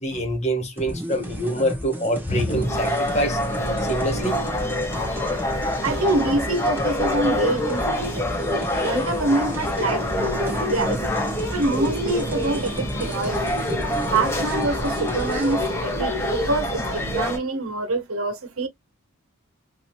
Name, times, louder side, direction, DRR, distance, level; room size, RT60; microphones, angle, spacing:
voice 1, 0.0-3.4 3.9-4.4, equal, 30° left, 1.4 m, -25 dB
sound 1, 0.8-15.5, equal, 10° right, 1.2 m, -35 dB
sound 2, 2.6-17.4, left 1 dB, 10° left, 1.4 m, -26 dB
voice 2, 5.8-8.4 8.7-11.0 11.5-13.6 14.1-18.7, right 2 dB, 75° right, 1.3 m, -26 dB
4.9 x 2.9 x 2.3 m
head